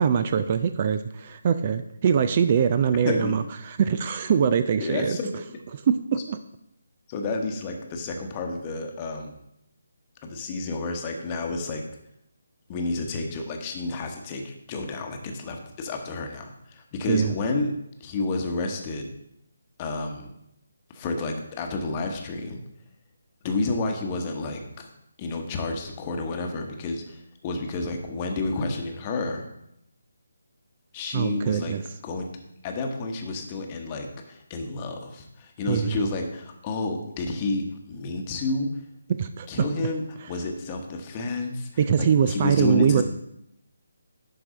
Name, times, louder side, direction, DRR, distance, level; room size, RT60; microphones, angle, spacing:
voice 1, 0.0-5.2 5.7-6.4 17.1-17.3 31.1-31.8 35.7-36.0 39.1-39.5 41.8-43.0, right 7 dB, 35° right, 10 dB, 0.3 m, -23 dB
voice 2, 3.0-3.4 4.8-5.3 7.1-9.3 10.2-11.8 12.7-17.7 18.0-19.1 19.8-20.3 20.9-22.6 23.4-24.9 25.2-29.5 30.9-31.7 32.0-32.3 32.6-38.7 39.5-41.7 42.0-43.0, left 2 dB, 25° left, 3 dB, 1.0 m, -30 dB
11.0 x 4.6 x 3.8 m, 0.81 s
figure-of-eight pair, 150°, 0 cm